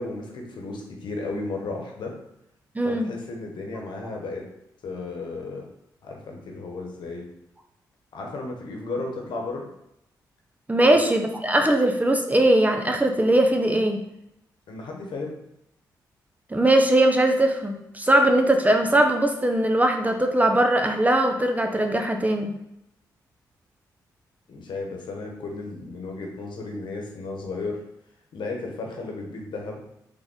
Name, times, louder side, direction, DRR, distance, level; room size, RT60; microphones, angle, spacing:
voice 1, 0.0-2.1 2.8-4.4 4.8-5.7 6.0-7.3 8.1-9.7 10.8-11.0 14.7-15.4 24.5-27.8 28.3-29.8, left 3 dB, 70° left, 1 dB, 1.1 m, -34 dB
voice 2, 2.7-3.1 10.7-14.0 16.5-22.5, right 1 dB, 20° right, 4 dB, 0.8 m, -20 dB
3.8 x 3.7 x 3.7 m, 0.82 s
supercardioid pair, 45°, 8 cm